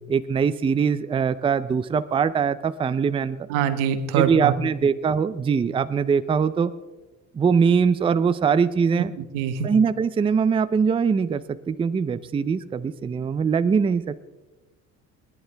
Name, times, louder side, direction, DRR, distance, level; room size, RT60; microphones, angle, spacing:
voice 1, 0.1-3.4 4.2-6.7 7.3-9.1 9.6-14.2, right 6 dB, 15° right, 13 dB, 0.4 m, -22 dB
voice 2, 3.5-4.5 9.2-9.7, right 8 dB, 90° right, 8 dB, 1.5 m, -24 dB
28.5 x 10.5 x 3.4 m, 1.2 s
cardioid pair, 125°, 32 cm